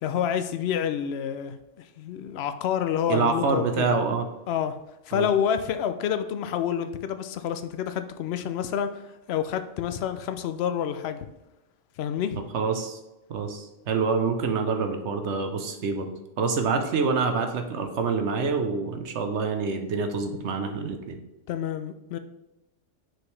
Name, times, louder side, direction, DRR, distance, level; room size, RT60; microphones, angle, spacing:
voice 1, 0.0-3.9 4.5-4.8 5.1-9.0 9.3-11.3 12.0-12.4 21.5-22.2, left 9 dB, 65° left, 9 dB, 0.7 m, -28 dB
voice 2, 3.1-4.2 5.1-5.3 12.5-13.0 13.3-16.1 16.4-21.2, right 4 dB, 65° right, 6 dB, 1.0 m, -26 dB
6.1 x 4.8 x 3.2 m, 0.97 s
omnidirectional pair, 1.3 m